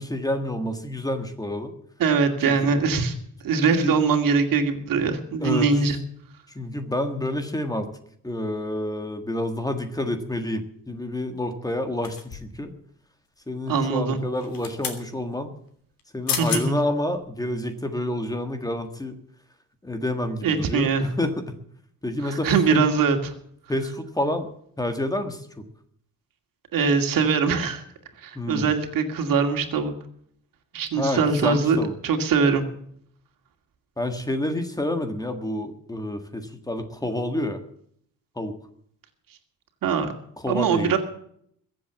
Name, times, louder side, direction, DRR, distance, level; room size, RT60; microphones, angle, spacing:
voice 1, 0.0-1.7 2.5-2.7 3.8-4.0 5.4-5.7 6.5-7.9 8.2-12.7 13.5-15.5 16.1-19.1 19.8-21.4 22.0-22.8 23.7-24.5 24.8-25.6 28.3-28.7 31.0-31.9 34.0-37.6 38.3-38.6 40.4-40.9, left 1 dB, 10° left, 7 dB, 1.6 m, -28 dB
voice 2, 2.0-3.1 3.4-6.0 13.7-14.2 16.4-16.8 20.4-21.1 22.2-23.3 26.7-27.8 28.2-29.9 30.7-32.6 39.8-40.1 40.5-41.0, right 5 dB, 75° right, 5 dB, 2.4 m, -22 dB
sound 1, 12.0-12.6 14.3-15.0 16.0-16.1 16.3-16.7 17.2-17.3, left 7 dB, 90° left, 3.1 m, -31 dB
22.5 x 7.9 x 7.1 m, 0.66 s
wide cardioid pair, 165°, 34 cm